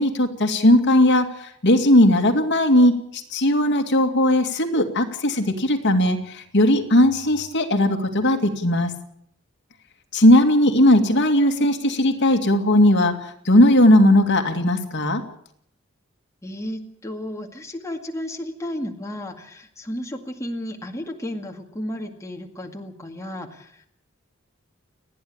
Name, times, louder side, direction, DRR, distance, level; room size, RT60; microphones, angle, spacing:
voice 1, 0.0-8.9 10.1-15.2, left 1 dB, 60° left, 5 dB, 2.3 m, -18 dB
voice 2, 16.4-23.9, left 1 dB, 15° left, 2 dB, 2.1 m, -33 dB
30.0 x 10.5 x 8.7 m, 0.69 s
head